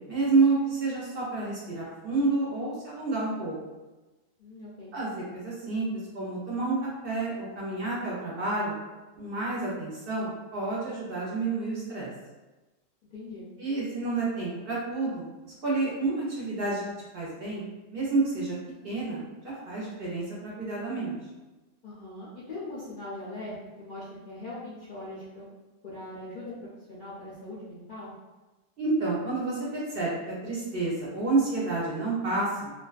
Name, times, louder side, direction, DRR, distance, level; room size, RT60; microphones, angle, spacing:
voice 1, 0.0-3.6 4.9-5.9 6.1-8.8 9.2-12.1 13.6-16.8 17.1-17.6 17.9-18.5 18.8-21.2 28.8-32.7, right 3 dB, 55° right, -6 dB, 0.7 m, -29 dB
voice 2, 4.4-4.9 13.1-13.4 21.8-25.4 25.8-26.5 26.9-28.1, left 2 dB, 60° left, -8 dB, 0.6 m, -41 dB
2.4 x 2.2 x 2.3 m, 1.1 s
omnidirectional pair, 1.3 m